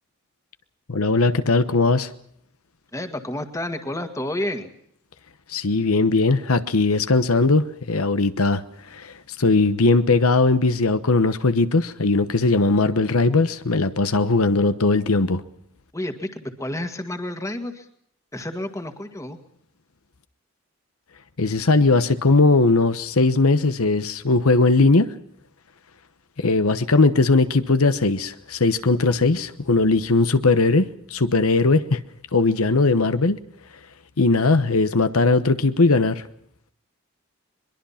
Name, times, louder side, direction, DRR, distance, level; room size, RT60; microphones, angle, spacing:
voice 1, 0.9-2.1 5.5-8.6 8.9-9.1 9.4-15.4 21.4-25.1 26.4-32.0 32.3-33.4 34.2-36.2, left 3 dB, 80° left, 11 dB, 1.1 m, -19 dB
voice 2, 2.9-4.7 15.9-17.9 18.3-19.4, left 1 dB, 15° left, 7 dB, 1.8 m, -30 dB
22.5 x 22.5 x 5.8 m, 0.70 s
head